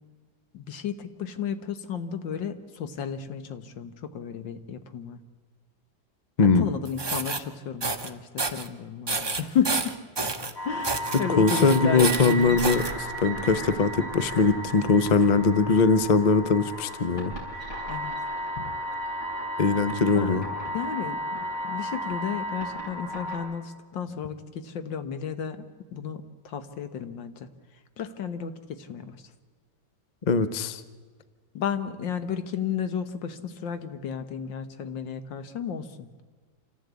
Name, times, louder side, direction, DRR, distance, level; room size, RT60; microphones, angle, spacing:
voice 1, 0.5-5.2 6.4-9.9 10.6-12.6 17.9-18.1 20.1-20.5 20.7-25.7 25.9-27.5 28.0-29.2 31.5-36.1, left 7 dB, 80° left, 9 dB, 1.9 m, -33 dB
sound 1, 6.8-7.4 7.8-8.1 8.4-8.7 9.1-10.5 10.8-11.2 11.5-12.9, right 3 dB, 20° right, 0.6 m, -29 dB
sound 2, 10.5-23.4, equal, 60° left, 6.6 m, -34 dB
voice 2, 11.4-17.3 18.6-18.7 19.6-20.4 30.3-30.8, left 4 dB, 40° left, 13 dB, 0.6 m, -21 dB
27.0 x 14.5 x 8.3 m, 1.5 s
omnidirectional pair, 2.0 m